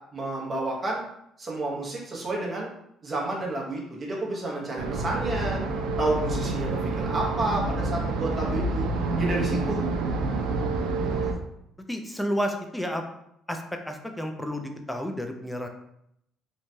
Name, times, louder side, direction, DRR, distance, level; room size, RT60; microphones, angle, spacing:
voice 1, 0.1-1.0 1.4-2.7 3.0-5.6 6.0-8.9 9.2-9.9, right 2 dB, 30° right, -3 dB, 0.8 m, -30 dB
sound 1, 4.8-11.3, right 3 dB, 80° right, 0.3 m, -28 dB
voice 2, 11.9-13.0 13.5-15.7, equal, 5° left, 4 dB, 0.3 m, -31 dB
3.1 x 2.2 x 2.6 m, 0.77 s
cardioid pair, 115°, 0 cm